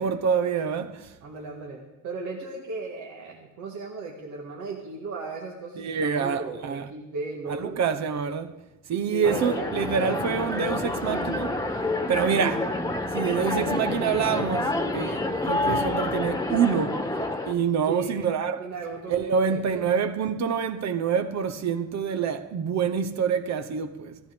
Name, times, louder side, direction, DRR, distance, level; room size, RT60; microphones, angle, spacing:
voice 1, 0.0-1.1 5.8-6.8 7.5-8.5 8.9-11.6 12.1-12.7 13.1-17.1 17.5-18.7 19.1-24.2, right 7 dB, 65° right, 1.0 m, -26 dB
voice 2, 1.2-7.8 9.1-9.8 12.2-12.7 17.8-19.9, right 3 dB, 85° right, 1.9 m, -36 dB
sound 1, 9.2-17.5, left 2 dB, 10° left, 1.3 m, -28 dB
14.5 x 13.5 x 5.2 m
cardioid pair, 90°, 30 cm